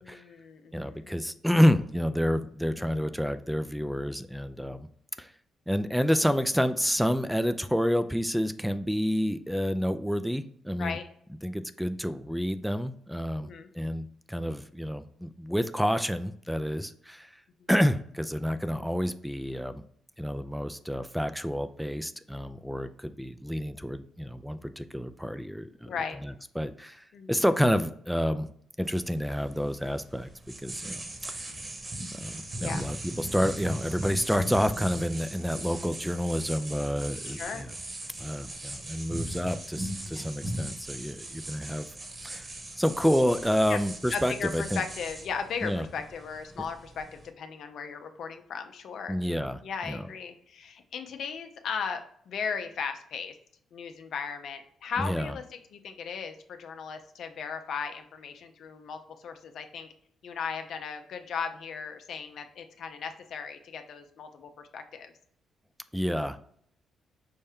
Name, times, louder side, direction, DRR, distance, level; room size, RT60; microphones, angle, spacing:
voice 1, 0.0-1.4 10.8-11.0 13.4-13.7 25.9-26.2 27.1-27.4 32.6-32.8 37.2-37.6 40.1-40.3 43.7-43.8 44.1-49.2 49.6-53.3 53.7-59.9 60.2-65.1, left 6 dB, 70° left, 7 dB, 0.5 m, -37 dB
voice 2, 0.7-4.9 5.2-5.3 5.7-11.0 11.4-13.5 13.7-17.4 17.7-19.8 20.2-25.9 26.2-28.5 28.8-30.3 30.6-31.5 32.1-37.7 38.2-41.9 42.2-42.5 42.8-44.8 45.6-45.9 49.1-49.6 49.9-50.1 55.0-55.3 65.9-66.4, equal, ahead, 10 dB, 0.3 m, -29 dB
sound 1, 28.8-47.3, right 1 dB, 35° right, 1.1 m, -39 dB
5.4 x 2.1 x 3.5 m, 0.64 s
supercardioid pair, 60°, 0 cm